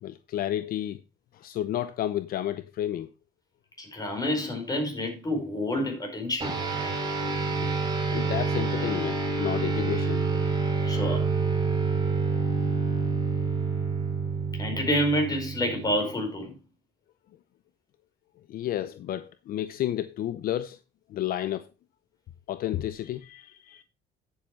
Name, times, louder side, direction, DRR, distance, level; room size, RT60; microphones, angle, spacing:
voice 1, 0.0-1.0 1.3-3.1 7.6-7.7 8.1-10.4 18.5-20.8 21.1-21.6 22.5-23.8, left 12 dB, 60° left, 0.6 m, -31 dB
voice 2, 3.8-7.2 10.8-11.3 14.6-16.5, equal, 20° left, 4.8 m, -29 dB
sound 1, 6.4-16.2, right 4 dB, 25° right, 3.4 m, -28 dB
10.0 x 7.2 x 4.5 m
cardioid pair, 110°, 17 cm